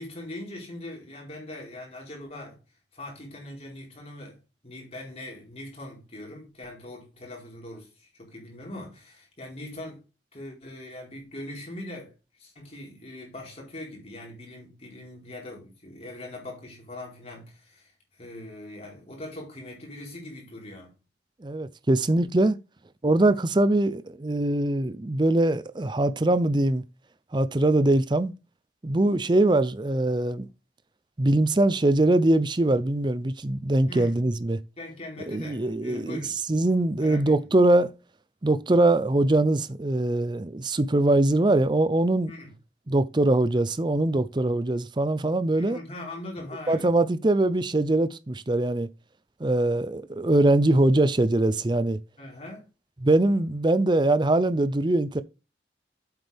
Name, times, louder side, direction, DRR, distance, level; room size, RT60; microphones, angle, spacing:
voice 1, 0.0-2.6 2.9-10.0 10.3-21.0 33.9-34.2 34.8-36.4 37.0-37.3 42.3-42.6 45.5-46.9 52.2-52.7, left 1 dB, 35° left, 4.4 m, -41 dB
voice 2, 21.4-22.6 23.0-26.8 27.3-28.3 28.8-30.5 31.2-34.6 35.3-37.9 38.4-42.3 42.9-45.8 46.7-48.9 49.4-52.0 53.0-55.2, right 2 dB, 25° right, 0.6 m, -22 dB
8.2 x 7.9 x 3.5 m
head